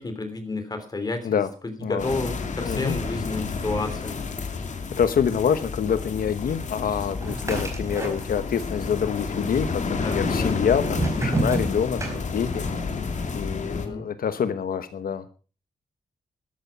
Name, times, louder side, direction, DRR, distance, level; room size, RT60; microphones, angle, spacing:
voice 1, 0.0-4.2 10.0-10.5 13.7-14.1, left 2 dB, 25° left, 8 dB, 3.3 m, -31 dB
sound 1, 2.0-13.9, left 4 dB, 55° left, 2.3 m, -30 dB
voice 2, 2.6-3.0 5.0-12.6 13.3-15.2, left 7 dB, 80° left, 11 dB, 1.2 m, -26 dB
sound 2, 7.2-8.6 8.9-9.6 10.3-12.7, right 2 dB, 20° right, 4.6 m, -29 dB
12.5 x 12.5 x 5.8 m, 0.37 s
wide cardioid pair, 150°, 15 cm